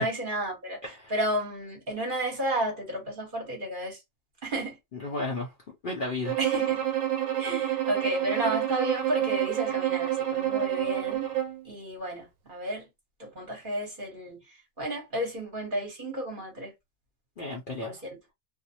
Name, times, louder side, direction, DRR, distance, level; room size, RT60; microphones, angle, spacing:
voice 1, 0.0-0.8 1.1-4.0 4.4-4.7 6.4-6.8 7.4-11.3 11.6-12.8 13.2-14.4 14.8-16.7 17.8-18.0, right 1 dB, 40° right, 1.0 m, -32 dB
voice 2, 0.8-1.1 4.9-5.5 5.8-6.3 17.4-18.0, left 2 dB, 55° left, 0.6 m, -33 dB
Bowed string instrument, 6.3-11.7, right 12 dB, 90° right, 1.1 m, -28 dB
2.6 x 2.0 x 2.8 m
omnidirectional pair, 1.4 m